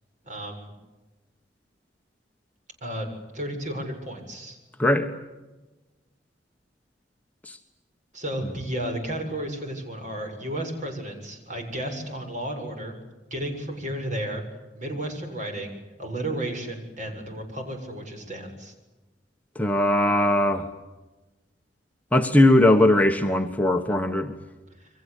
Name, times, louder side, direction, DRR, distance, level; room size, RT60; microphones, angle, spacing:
voice 1, 0.3-0.7 2.8-4.6 8.1-12.9 13.3-14.4 14.7-18.7 24.8-24.9, right 1 dB, 45° right, 4 dB, 7.4 m, -33 dB
voice 2, 19.6-20.7 22.1-24.4, left 1 dB, 10° left, 4 dB, 1.3 m, -20 dB
29.0 x 24.0 x 8.4 m, 1.1 s
head